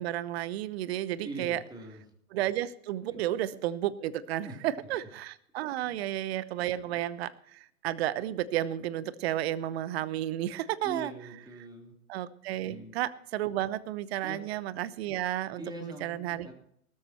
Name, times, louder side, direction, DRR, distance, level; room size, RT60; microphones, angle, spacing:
voice 1, 0.0-1.6 2.3-11.1 12.1-16.5, right 13 dB, 45° right, 16 dB, 1.0 m, -32 dB
voice 2, 1.2-2.0 3.1-3.2 4.4-4.9 5.9-6.0 10.8-11.9 12.6-12.9 14.2-14.4 15.6-16.5, right 1 dB, 10° right, 1 dB, 3.4 m, -43 dB
18.5 x 13.5 x 3.1 m, 0.68 s
hypercardioid pair, 125°, 43 cm